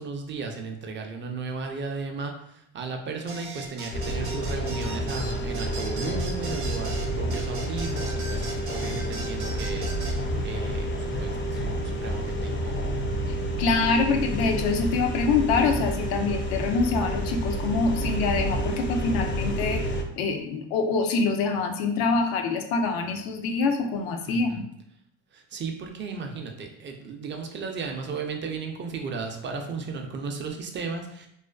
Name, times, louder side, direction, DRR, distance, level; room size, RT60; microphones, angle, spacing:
voice 1, 0.0-13.0 24.2-24.7 25.3-31.3, right 4 dB, 30° right, 3 dB, 0.4 m, -35 dB
sound 1, 3.3-10.2, right 3 dB, 75° right, 0.7 m, -39 dB
sound 2, 3.9-20.0, equal, 30° left, 0.4 m, -29 dB
voice 2, 13.6-19.9 20.2-24.6, left 4 dB, 85° left, 4 dB, 0.5 m, -25 dB
2.4 x 2.3 x 2.2 m, 0.74 s
supercardioid pair, 95°, 38 cm